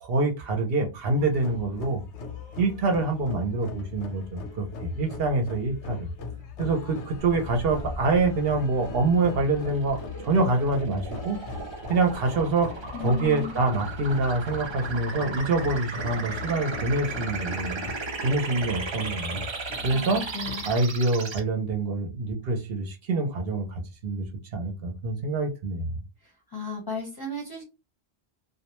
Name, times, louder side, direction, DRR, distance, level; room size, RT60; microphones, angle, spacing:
voice 1, 0.0-2.0 2.6-6.1 6.6-11.4 11.9-12.7 13.0-17.8 18.2-19.4 19.8-20.2 20.6-24.3 24.5-26.0, right 3 dB, 65° right, 0.8 m, -26 dB
sound 1, 1.2-20.7, left 5 dB, 90° left, 1.0 m, -40 dB
sound 2, 7.2-21.4, right 4 dB, 40° right, 0.4 m, -36 dB
voice 2, 12.9-13.5 19.9-20.7 26.2-27.6, left 3 dB, 25° left, 0.6 m, -35 dB
2.3 x 2.1 x 2.9 m
omnidirectional pair, 1.1 m